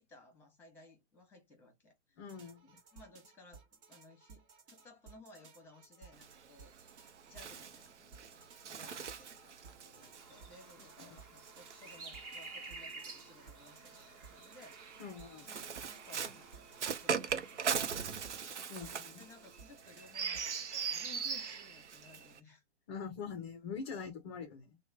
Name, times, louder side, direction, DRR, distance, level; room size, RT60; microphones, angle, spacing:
voice 1, 0.0-2.2 2.9-6.7 7.3-15.0 15.4-16.7 17.0-18.4 19.2-22.6, left 2 dB, 5° left, 1.1 m, -59 dB
voice 2, 2.2-2.8 15.0-15.5 18.7-19.2 22.9-24.8, left 6 dB, 25° left, 0.5 m, -44 dB
sound 1, 2.3-20.6, right 5 dB, 50° right, 1.1 m, -59 dB
Bird, 6.1-12.7 13.6-22.4, right 6 dB, 85° right, 0.7 m, -40 dB
sound 2, 10.2-18.9, right 3 dB, 25° right, 1.2 m, -53 dB
3.0 x 2.1 x 3.2 m
hypercardioid pair, 140°, 34 cm